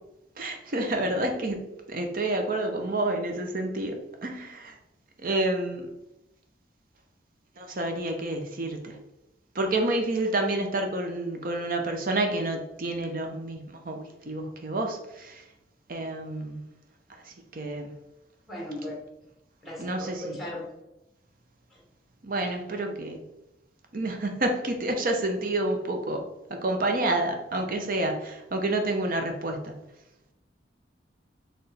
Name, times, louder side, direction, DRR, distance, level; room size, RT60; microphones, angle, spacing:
voice 1, 0.4-4.8 5.2-5.9 7.6-9.0 9.5-15.5 15.9-16.7 17.1-17.9 19.8-20.4 22.2-23.2 23.9-29.8, right 2 dB, 50° right, 4 dB, 0.7 m, -29 dB
voice 2, 18.5-18.9 19.6-20.7 21.7-21.8, left 1 dB, ahead, -3 dB, 1.1 m, -37 dB
4.5 x 3.2 x 3.3 m, 0.89 s
head